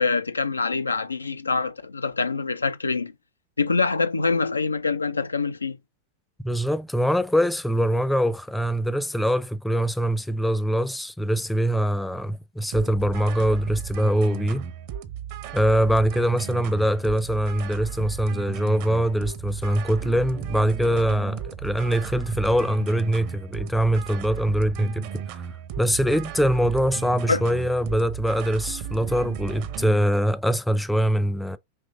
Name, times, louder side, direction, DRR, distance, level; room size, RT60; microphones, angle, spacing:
voice 1, 0.0-3.1 3.6-5.8 27.3-27.4, left 4 dB, 80° left, 0.3 m, -25 dB
voice 2, 6.4-14.7 15.5-25.2 25.8-31.6, equal, 5° left, 0.4 m, -23 dB
sound 1, 12.7-30.0, right 8 dB, 45° right, 0.6 m, -35 dB
5.2 x 3.1 x 2.5 m
figure-of-eight pair, 90°, 0 cm